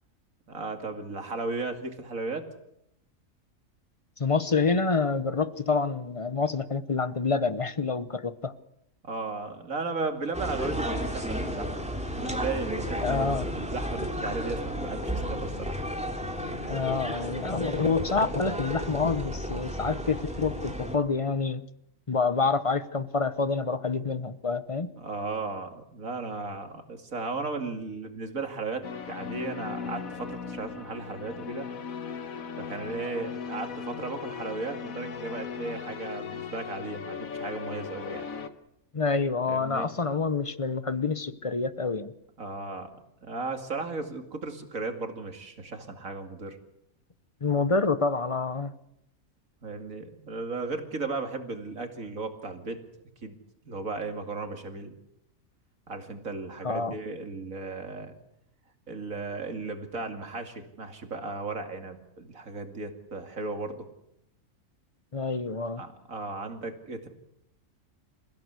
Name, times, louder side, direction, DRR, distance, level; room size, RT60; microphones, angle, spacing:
voice 1, 0.5-2.5 9.1-11.7 12.1-15.8 25.0-31.7 32.6-38.2 39.5-39.9 42.4-42.9 43.2-46.6 49.6-52.8 53.2-53.3 53.6-55.0 55.9-58.2 58.9-63.9 65.8-67.1, right 3 dB, 75° right, 6 dB, 2.9 m, -35 dB
voice 2, 4.2-8.5 13.0-13.5 16.7-21.6 22.1-24.9 38.9-42.1 47.4-48.7 56.6-56.9 65.1-65.8, left 4 dB, 30° left, 14 dB, 0.8 m, -27 dB
sound 1, 10.3-21.0, equal, 5° right, 2.8 m, -33 dB
sound 2, 28.8-38.5, left 6 dB, 90° left, 1.8 m, -38 dB
28.0 x 16.0 x 8.2 m, 0.80 s
omnidirectional pair, 1.4 m